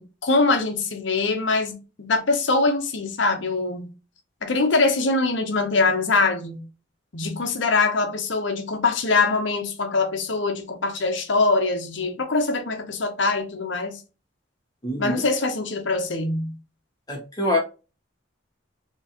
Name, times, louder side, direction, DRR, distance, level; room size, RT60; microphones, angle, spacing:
voice 1, 0.0-3.9 4.4-6.6 7.1-14.0 15.0-16.5, left 3 dB, 75° left, 0.9 m, -23 dB
voice 2, 14.8-15.2 17.1-17.6, left 1 dB, 20° left, 1.6 m, -25 dB
4.5 x 3.0 x 2.9 m
head